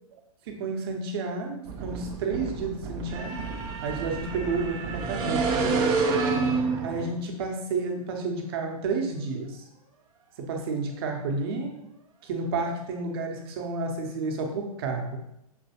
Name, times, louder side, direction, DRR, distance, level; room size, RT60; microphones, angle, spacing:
voice 1, 0.5-3.5 3.8-5.9 6.8-9.7 10.4-11.7 12.2-15.2, right 3 dB, 40° right, 3 dB, 0.9 m, -31 dB
sound 1, 1.7-7.2, right 4 dB, 20° right, 0.5 m, -28 dB
6.0 x 3.0 x 2.9 m, 0.82 s
figure-of-eight pair, 115°, 19 cm